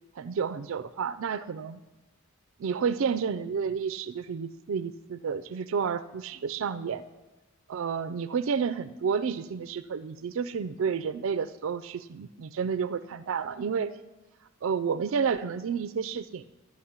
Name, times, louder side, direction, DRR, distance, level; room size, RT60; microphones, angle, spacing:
voice 1, 0.2-1.8 2.6-7.0 7.7-13.9 14.6-16.4, right 6 dB, 65° right, 14 dB, 0.4 m, -30 dB
11.5 x 6.2 x 8.7 m, 1.1 s
head